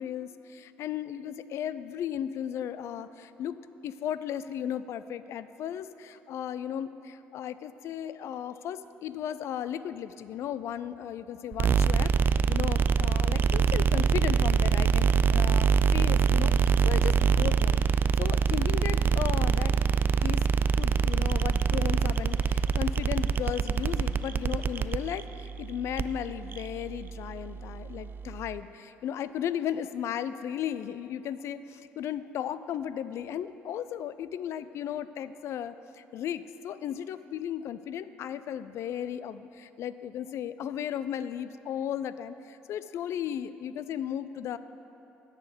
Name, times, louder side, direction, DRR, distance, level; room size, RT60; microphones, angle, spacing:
voice 1, 0.0-3.6 3.8-17.8 18.2-19.7 20.0-20.4 20.8-44.6, left 9 dB, 65° left, 14 dB, 0.3 m, -35 dB
sound 1, 11.5-28.6, right 6 dB, 40° right, 0.3 m, -25 dB
10.0 x 4.9 x 7.8 m, 3.0 s
supercardioid pair, 65°, 5 cm